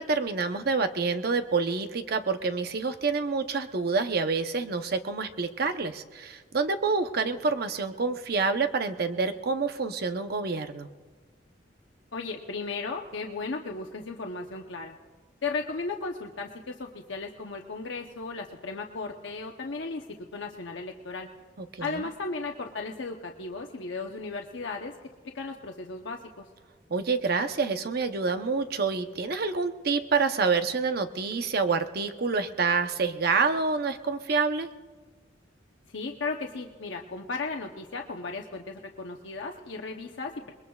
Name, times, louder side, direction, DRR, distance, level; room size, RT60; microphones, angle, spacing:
voice 1, 0.0-10.9 21.7-22.1 26.9-34.7, right 4 dB, 55° right, 8 dB, 0.8 m, -27 dB
voice 2, 12.1-15.0 15.4-21.3 21.8-25.0 25.3-26.5 35.9-40.5, left 3 dB, 90° left, 2 dB, 0.9 m, -35 dB
28.5 x 21.0 x 2.4 m, 1.4 s
head